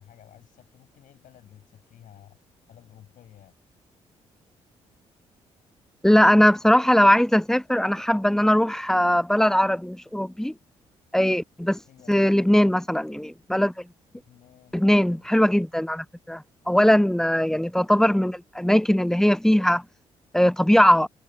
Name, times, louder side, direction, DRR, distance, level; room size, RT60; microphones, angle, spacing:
voice 1, 0.0-2.4 2.7-3.5 11.8-12.6 14.1-14.8 15.1-15.3, left 11 dB, 65° left, 7.1 m, -53 dB
voice 2, 6.0-10.5 11.1-11.8 12.1-13.7 14.7-19.8 20.3-21.1, equal, 5° left, 0.5 m, -20 dB
hypercardioid pair, 45°, 15 cm